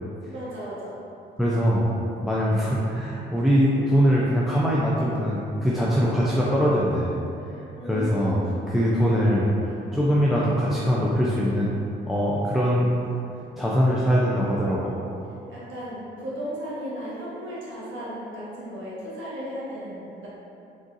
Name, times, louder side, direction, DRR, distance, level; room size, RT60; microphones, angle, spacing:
voice 1, 0.3-1.0 5.9-6.2 7.7-8.6 15.5-20.3, equal, 75° right, -8 dB, 1.3 m, -35 dB
voice 2, 1.4-1.9 2.2-7.1 7.8-11.7 12.1-12.9 13.6-14.9, equal, ahead, -6 dB, 0.4 m, -22 dB
4.0 x 3.6 x 2.5 m, 2.8 s
cardioid pair, 90°, 20 cm